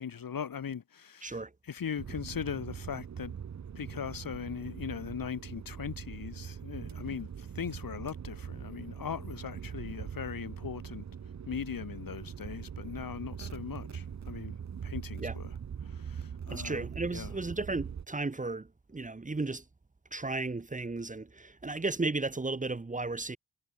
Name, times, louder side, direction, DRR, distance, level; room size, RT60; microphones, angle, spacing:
voice 1, 0.0-1.4 1.7-3.3 3.7-11.0 11.5-14.6 14.8-15.5 15.8-16.8 17.1-17.3, left 7 dB, 70° left, 2.4 m, -39 dB
voice 2, 1.2-1.5 15.2-15.4 16.5-19.6 20.1-23.4, right 3 dB, 20° right, 1.2 m, -34 dB
sound 1, 2.0-18.1, right 7 dB, 50° right, 0.9 m, -42 dB
wide cardioid pair, 150°, 35 cm